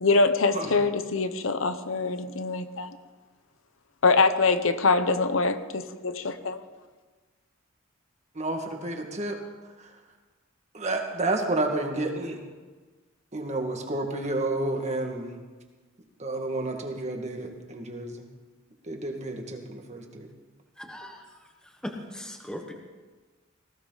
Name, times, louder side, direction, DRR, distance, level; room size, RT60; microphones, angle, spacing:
voice 1, 0.0-3.0 4.0-6.6, left 3 dB, 80° left, 11 dB, 0.9 m, -24 dB
voice 2, 8.3-9.4 9.8-9.9 10.7-12.4 13.3-15.4 16.2-18.2 18.8-20.3, right 2 dB, 35° right, 2 dB, 1.9 m, -30 dB
voice 3, 20.8-21.2 21.8-22.7, left 1 dB, 5° left, 1 dB, 1.3 m, -38 dB
19.0 x 15.5 x 4.0 m, 1.3 s
head